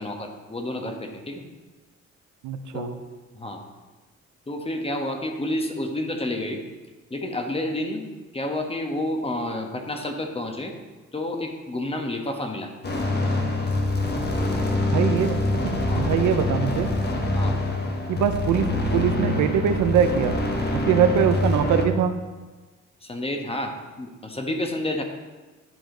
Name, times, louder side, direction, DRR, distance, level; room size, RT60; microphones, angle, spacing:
voice 1, 0.0-1.4 2.7-2.9 3.3-3.6 4.5-6.6 7.1-8.1 8.3-10.7 11.1-12.7 14.4-14.6 15.9-16.1 17.3-17.6 23.0-25.0, left 1 dB, 20° left, 4 dB, 1.1 m, -30 dB
voice 2, 2.4-2.9 14.8-16.9 18.1-20.4 20.7-22.1, right 8 dB, 80° right, 8 dB, 0.7 m, -23 dB
sound 1, 12.8-21.8, left 2 dB, 35° left, 1.2 m, -25 dB
10.5 x 5.0 x 3.9 m, 1.3 s
cardioid pair, 90°, 30 cm